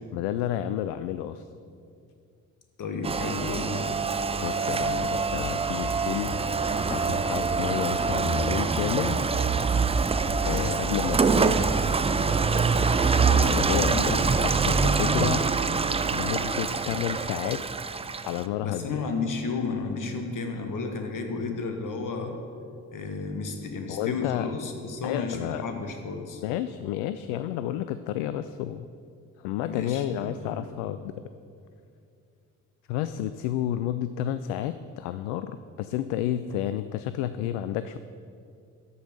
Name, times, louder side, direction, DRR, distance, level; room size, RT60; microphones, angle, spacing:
voice 1, 0.1-1.4 4.4-6.4 6.9-9.3 10.4-11.6 13.3-15.5 16.1-19.0 23.9-24.5 25.0-25.6 26.4-28.9 29.4-31.1 32.9-38.0, left 12 dB, 70° left, 12 dB, 0.5 m, -31 dB
voice 2, 2.8-3.9 13.7-14.4 18.6-22.4 22.9-26.4 29.6-30.6, left 4 dB, 45° left, 5 dB, 1.6 m, -32 dB
Rain, 3.0-18.4, right 4 dB, 15° right, 0.5 m, -25 dB
12.5 x 5.5 x 6.5 m, 2.4 s
figure-of-eight pair, 45°, 43 cm